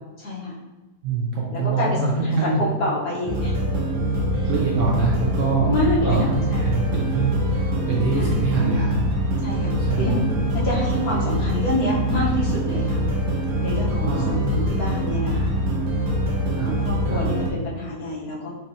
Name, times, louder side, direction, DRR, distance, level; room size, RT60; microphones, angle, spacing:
voice 1, 0.2-0.5 1.5-3.5 3.9-4.0 4.3-4.5 5.6-6.7 8.1-8.3 9.4-10.3 10.5-13.0 13.6-14.1 14.5-15.5 16.6-18.5, left 1 dB, 65° left, -6 dB, 1.4 m, -27 dB
voice 2, 1.0-2.6 4.4-5.7 6.0-9.0 9.3-9.4 9.8-10.3 14.0-14.3 16.5-16.8 17.1-17.2, right 4 dB, 65° right, -3 dB, 0.8 m, -24 dB
sound 1, 3.3-17.5, equal, 90° right, 1.4 m, -24 dB
4.2 x 3.0 x 2.6 m, 1.2 s
omnidirectional pair, 1.7 m